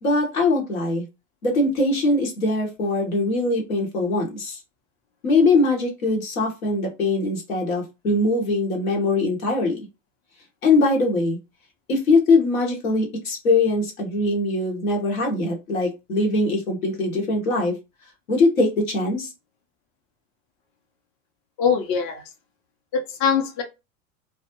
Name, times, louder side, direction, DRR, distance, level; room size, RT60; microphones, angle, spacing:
voice 1, 0.0-1.1 1.4-4.6 5.2-9.8 10.6-11.4 11.9-17.8 18.3-19.3, left 2 dB, 85° left, 0 dB, 1.0 m, -22 dB
voice 2, 21.6-22.2 22.9-23.6, left 6 dB, 45° left, 3 dB, 0.7 m, -22 dB
2.2 x 2.0 x 2.9 m, 0.25 s
hypercardioid pair, 85°, 41 cm